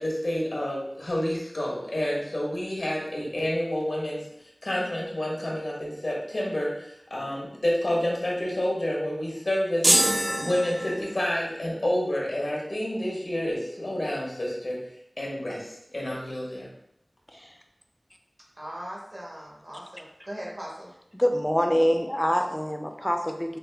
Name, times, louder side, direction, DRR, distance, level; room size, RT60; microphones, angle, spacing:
voice 1, 0.0-4.2 4.6-9.9 10.4-14.8 15.2-16.7, left 1 dB, 90° left, -3 dB, 1.1 m, -29 dB
sound 1, 9.8-11.4, right 1 dB, 85° right, 0.6 m, -24 dB
voice 2, 18.6-20.9, equal, 50° right, -4 dB, 1.2 m, -39 dB
voice 3, 21.1-23.6, equal, 15° left, 4 dB, 0.5 m, -25 dB
5.0 x 2.1 x 3.4 m, 0.77 s
wide cardioid pair, 45°, 0 cm